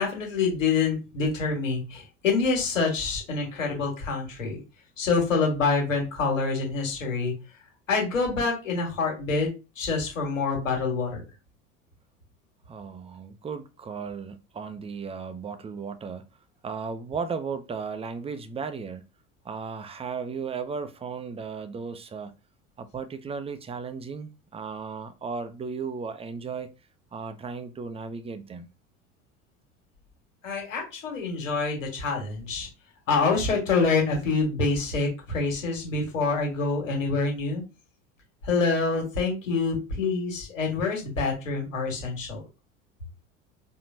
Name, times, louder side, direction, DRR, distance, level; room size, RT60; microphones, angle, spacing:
voice 1, 0.0-4.6 5.0-7.3 7.9-9.5 9.8-11.2 30.4-32.7 33.1-37.6 38.4-42.4, left 4 dB, 80° left, 1.8 m, -26 dB
voice 2, 12.7-16.2 16.6-19.0 19.4-22.4 22.8-26.7 27.1-28.7, right 5 dB, 15° right, 0.6 m, -35 dB
4.3 x 2.8 x 2.7 m
hypercardioid pair, 70°, 38 cm